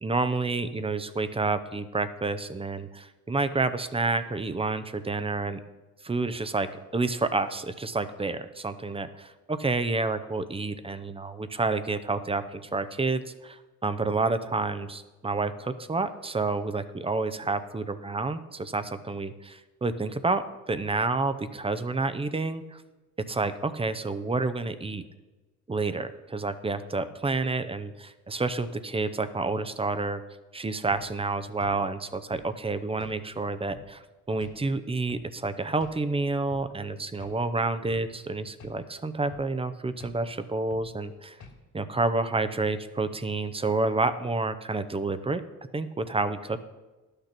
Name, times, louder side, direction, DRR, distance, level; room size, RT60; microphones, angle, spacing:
voice 1, 0.0-5.6 6.0-22.8 23.3-25.0 25.7-30.2 30.5-34.0 34.3-41.4 41.7-45.4 45.7-46.6, right 3 dB, 20° right, 12 dB, 0.6 m, -29 dB
sound 1, 30.9-31.1 31.6-31.8 32.3-32.5 33.0-33.2 33.7-33.9 34.4-34.6 35.1-35.3 35.8-36.0 36.5-36.7 37.2-37.4 37.9-38.1 38.6-38.8 39.3-39.5 40.0-40.2 40.7-40.9 41.4-41.6, left 4 dB, 65° left, 2.7 m, -47 dB
11.5 x 6.7 x 6.0 m, 1.2 s
cardioid pair, 90°, 30 cm